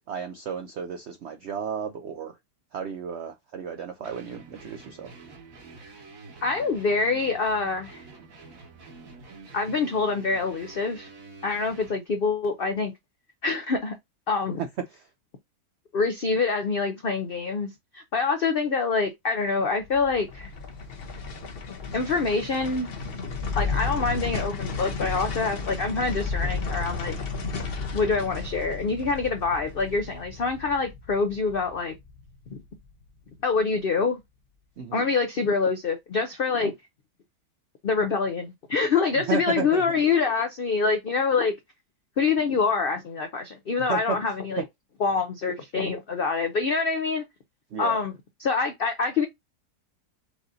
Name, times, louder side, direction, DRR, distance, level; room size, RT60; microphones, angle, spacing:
voice 1, 0.1-2.4 2.7-5.1 14.6-15.1 34.8-35.1 39.2-39.8 43.9-44.2 44.6-44.7 47.7-48.0, right 6 dB, 75° right, 0.6 m, -33 dB
sound 1, 4.0-12.0, right 3 dB, 55° right, 1.6 m, -47 dB
voice 2, 6.4-8.0 9.5-11.1 11.4-12.9 13.4-13.9 14.3-14.6 15.9-20.5 21.9-22.9 23.6-27.2 27.9-31.9 32.5-32.6 33.4-34.2 34.9-36.7 37.8-41.5 42.2-44.6 45.0-47.2 47.8-48.1 48.4-49.2, left 4 dB, 70° left, 0.5 m, -25 dB
sound 2, 19.8-33.0 33.3-33.4, left 4 dB, 45° left, 0.8 m, -33 dB
4.8 x 2.7 x 3.8 m
omnidirectional pair, 1.8 m